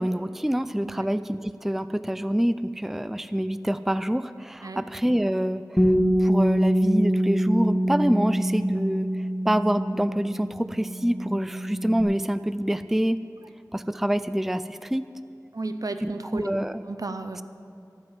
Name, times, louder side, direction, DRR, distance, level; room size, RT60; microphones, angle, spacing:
voice 1, 0.0-5.9 6.2-9.1 9.4-13.2 13.7-15.1 16.0-16.8, equal, 5° right, 13 dB, 0.4 m, -26 dB
Bass guitar, 5.8-12.0, equal, 15° left, 1.9 m, -25 dB
voice 2, 15.5-16.5 16.9-17.4, right 3 dB, 60° right, 9 dB, 0.8 m, -33 dB
13.0 x 9.5 x 7.6 m, 2.8 s
wide cardioid pair, 45°, 7 cm